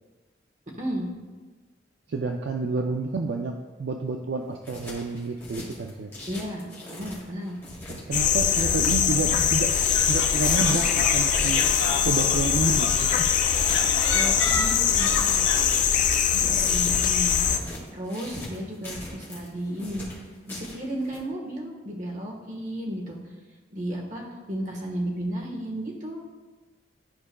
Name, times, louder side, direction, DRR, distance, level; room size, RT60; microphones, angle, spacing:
voice 1, 0.8-1.1 6.3-7.6 14.1-15.4 16.3-17.4 17.9-20.1 20.5-23.2 23.7-26.2, equal, 40° right, -1 dB, 1.3 m, -33 dB
voice 2, 2.1-6.1 7.9-9.7 10.1-11.6 12.0-13.1, right 3 dB, 65° right, 3 dB, 0.4 m, -29 dB
sound 1, 4.4-21.2, left 1 dB, 15° left, 1.8 m, -41 dB
sound 2, 8.1-17.6, left 8 dB, 45° left, 0.4 m, -22 dB
sound 3, 9.9-15.7, left 3 dB, 85° left, 0.9 m, -32 dB
12.0 x 4.8 x 2.2 m, 1.3 s
head